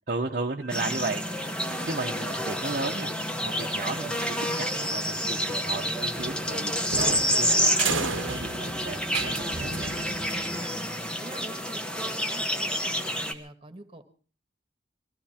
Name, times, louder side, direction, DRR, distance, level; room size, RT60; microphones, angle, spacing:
voice 1, 0.1-1.2 1.9-7.7 8.0-10.0, right 3 dB, 45° right, 0 dB, 1.0 m, -34 dB
sound 1, 0.6-10.3, right 2 dB, 70° left, 3.1 m, -47 dB
sound 2, 0.7-13.3, equal, 5° left, 1.0 m, -29 dB
sound 3, 6.2-10.6, right 5 dB, 90° right, 1.1 m, -34 dB
voice 2, 10.0-14.0, right 1 dB, 30° right, 9 dB, 1.6 m, -45 dB
21.0 x 14.5 x 4.4 m, 0.40 s
head